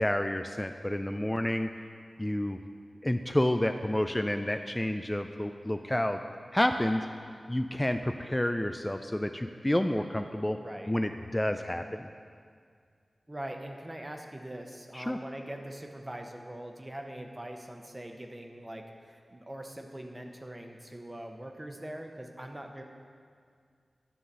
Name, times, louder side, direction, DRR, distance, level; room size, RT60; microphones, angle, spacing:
voice 1, 0.0-1.7 2.2-2.6 3.0-6.2 6.5-7.1 7.5-10.6 10.9-12.1 14.9-15.2, left 1 dB, 20° left, 6 dB, 0.3 m, -29 dB
voice 2, 10.5-10.9 13.3-22.8, right 1 dB, 25° right, 3 dB, 0.9 m, -42 dB
9.9 x 3.8 x 6.6 m, 2.1 s
cardioid pair, 40°, 0 cm